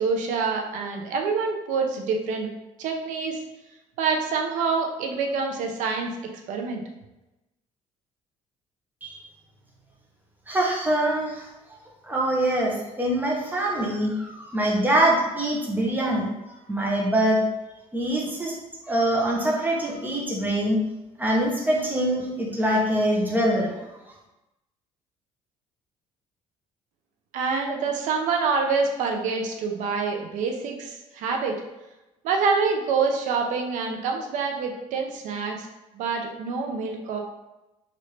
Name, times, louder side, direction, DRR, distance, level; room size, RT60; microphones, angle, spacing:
voice 1, 0.0-2.5 2.8-3.4 4.0-6.2 6.5-6.8 27.3-31.5 32.2-35.7 35.9-37.2, right 4 dB, 80° right, 3 dB, 0.6 m, -26 dB
voice 2, 10.5-11.5 12.1-16.3 16.7-17.4 17.9-18.5 18.8-20.8 21.2-23.7, right 1 dB, 15° right, -2 dB, 0.9 m, -24 dB
3.1 x 2.6 x 3.2 m, 0.99 s
cardioid pair, 100°, 13 cm